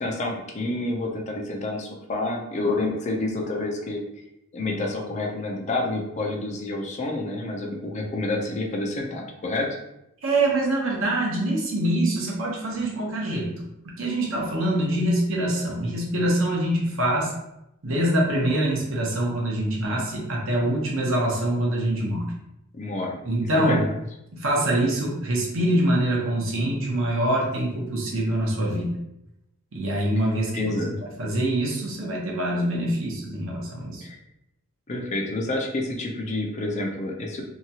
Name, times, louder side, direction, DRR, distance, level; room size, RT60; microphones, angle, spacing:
voice 1, 0.0-4.0 4.5-9.7 22.7-23.2 23.5-23.9 30.5-30.9 34.0-34.2 34.9-37.4, left 2 dB, 30° left, 0 dB, 0.4 m, -28 dB
voice 2, 10.2-13.5 14.0-17.3 17.8-22.3 23.2-23.8 24.3-29.0 29.7-30.7 31.0-34.0, right 1 dB, 60° right, -2 dB, 0.7 m, -24 dB
2.8 x 2.2 x 2.7 m, 0.86 s
head